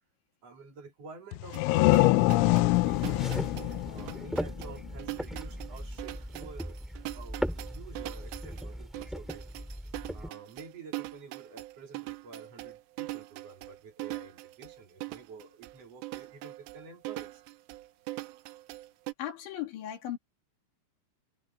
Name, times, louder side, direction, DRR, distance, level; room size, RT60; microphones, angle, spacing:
voice 1, 0.4-2.5 2.8-3.3 3.8-6.8 7.1-9.4 10.1-17.4, right 4 dB, 40° right, 3.0 m, -49 dB
sound 1, 1.3-4.9, left 21 dB, 85° left, 2.8 m, -25 dB
sound 2, 1.5-19.1, right 20 dB, 85° right, 3.2 m, -42 dB
sound 3, 2.2-10.3, equal, ahead, 0.4 m, -39 dB
voice 2, 19.2-20.2, left 11 dB, 65° left, 4.7 m, -35 dB
omnidirectional pair, 5.9 m